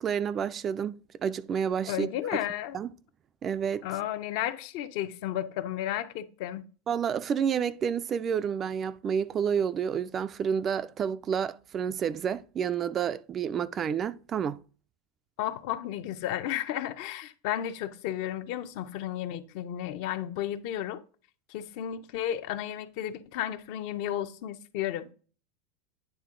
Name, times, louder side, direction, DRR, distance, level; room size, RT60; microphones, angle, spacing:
voice 1, 0.0-2.1 2.7-2.9 3.4-3.9 6.9-14.6, right 7 dB, 25° right, 0.3 m, -29 dB
voice 2, 1.9-2.8 3.8-6.6 15.4-21.0 21.5-25.1, left 11 dB, 55° left, 0.6 m, -33 dB
9.2 x 3.6 x 3.7 m
supercardioid pair, 150°, 0 cm